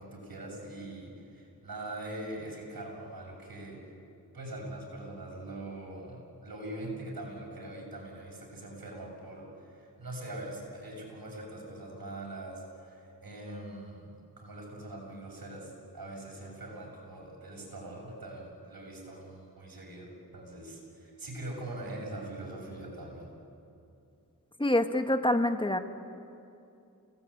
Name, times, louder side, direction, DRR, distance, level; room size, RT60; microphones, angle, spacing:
voice 1, 0.0-3.8 4.3-23.3, right 1 dB, 75° right, -2 dB, 7.2 m, -42 dB
voice 2, 24.6-25.8, left 1 dB, 15° left, 7 dB, 1.5 m, -26 dB
29.5 x 18.5 x 8.6 m, 2.6 s
wide cardioid pair, 70°, 36 cm